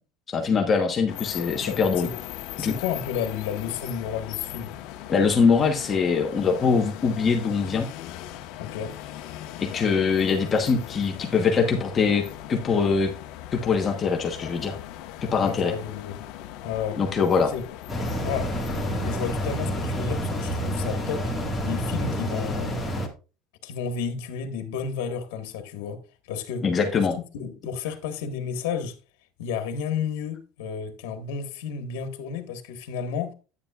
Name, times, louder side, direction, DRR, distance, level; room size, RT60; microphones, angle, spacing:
voice 1, 0.3-2.1 2.6-2.7 5.1-7.9 9.6-13.1 13.5-14.7 15.2-15.7 17.0-17.5 26.6-27.2, left 5 dB, 25° left, 1.1 m, -23 dB
sound 1, 1.1-19.6, left 13 dB, 60° left, 1.1 m, -39 dB
voice 2, 1.6-2.2 2.6-4.7 8.6-8.9 15.4-16.2 16.6-17.0 17.4-17.6 18.2-18.5 19.0-21.3 21.6-22.8 23.6-26.0 26.3-26.6 27.3-28.9 29.4-33.3, left 7 dB, 85° left, 1.4 m, -32 dB
sound 2, 17.9-23.1, equal, 5° left, 1.7 m, -28 dB
9.9 x 9.3 x 2.4 m
cardioid pair, 160°, 0 cm